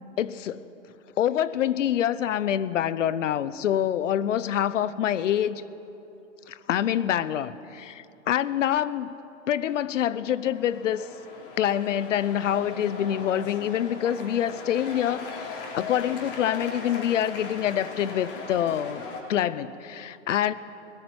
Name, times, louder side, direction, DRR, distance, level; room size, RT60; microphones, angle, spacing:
voice 1, 0.2-0.6 1.2-5.6 6.5-9.1 9.5-11.1 11.6-20.5, left 10 dB, 75° left, 17 dB, 0.9 m, -26 dB
sound 1, 10.3-19.2, left 4 dB, 45° left, 3.6 m, -39 dB
19.5 x 14.0 x 9.6 m, 3.0 s
hypercardioid pair, 145°, 37 cm